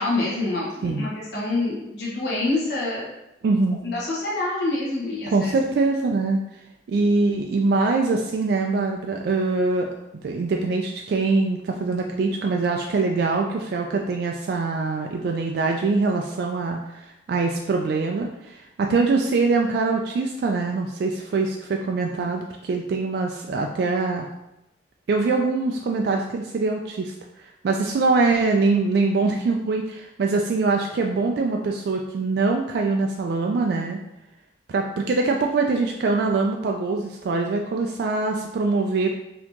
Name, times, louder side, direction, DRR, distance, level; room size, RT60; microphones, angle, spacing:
voice 1, 0.0-3.1 3.8-5.8, left 2 dB, 65° left, -7 dB, 1.1 m, -26 dB
voice 2, 3.4-3.8 5.3-6.4 6.9-9.9 10.2-24.3 25.1-27.1 27.6-34.0 34.7-39.1, right 3 dB, 60° right, 2 dB, 0.3 m, -23 dB
4.1 x 2.9 x 2.9 m, 0.89 s
head